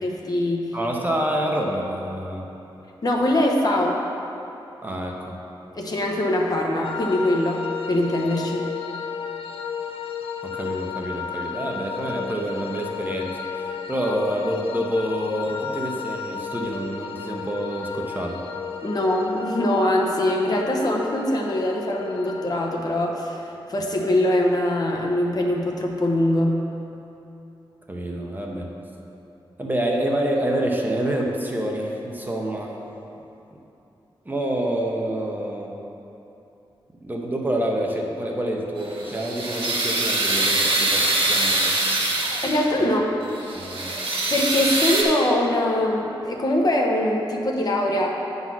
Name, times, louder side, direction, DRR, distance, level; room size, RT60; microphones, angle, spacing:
voice 1, 0.0-0.7 3.0-4.0 5.7-8.6 18.8-26.6 42.4-43.1 44.3-48.1, left 1 dB, 45° left, -1 dB, 0.9 m, -22 dB
voice 2, 0.7-2.5 4.8-5.4 10.4-18.4 27.9-28.7 29.6-32.8 34.2-35.8 37.0-41.8 42.8-42.9 43.5-44.0, right 1 dB, 20° right, -1 dB, 0.8 m, -27 dB
sound 1, 6.8-22.7, left 6 dB, 80° left, 0.4 m, -33 dB
sound 2, 38.8-42.8 43.3-45.0, right 2 dB, 70° right, 1.1 m, -23 dB
8.7 x 4.0 x 6.0 m, 2.9 s
wide cardioid pair, 100°, 9 cm